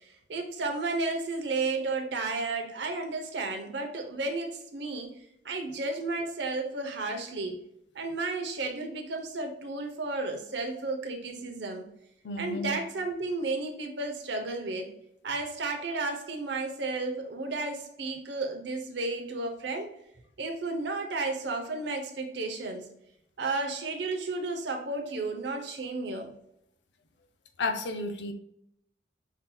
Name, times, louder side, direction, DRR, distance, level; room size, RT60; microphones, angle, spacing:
voice 1, 0.0-5.1 5.4-7.6 7.9-11.9 12.4-14.9 15.2-19.9 20.4-22.9 23.4-26.3, right 3 dB, 70° right, 3 dB, 0.8 m, -33 dB
voice 2, 12.2-12.8 27.6-28.3, left 2 dB, 75° left, 6 dB, 0.6 m, -32 dB
5.9 x 2.8 x 2.3 m, 0.78 s
head